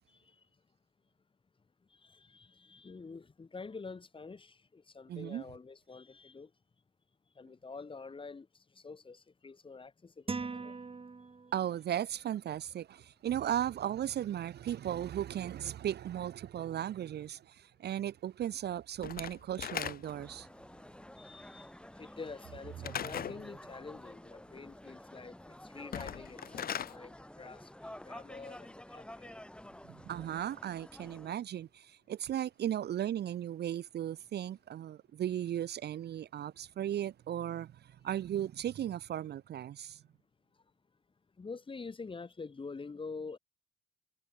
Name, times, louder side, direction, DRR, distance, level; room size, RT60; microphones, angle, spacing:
voice 1, 2.0-6.5 7.4-8.5 8.7-10.7 21.2-21.7 22.0-29.4 41.4-43.4, left 4 dB, 25° left, 1.5 m, -47 dB
voice 2, 5.1-5.4 11.5-20.5 22.8-23.0 29.8-40.0, right 11 dB, 55° right, 0.6 m, -36 dB
sound 1, 10.3-11.8, right 4 dB, 30° right, 3.0 m, -40 dB
Slam / Wood, 19.0-20.3 22.8-23.4 25.8-27.0, left 9 dB, 50° left, 0.8 m, -38 dB
sound 2, 20.0-31.4, left 1 dB, 5° left, 3.4 m, -51 dB
cardioid pair, 90°, 20 cm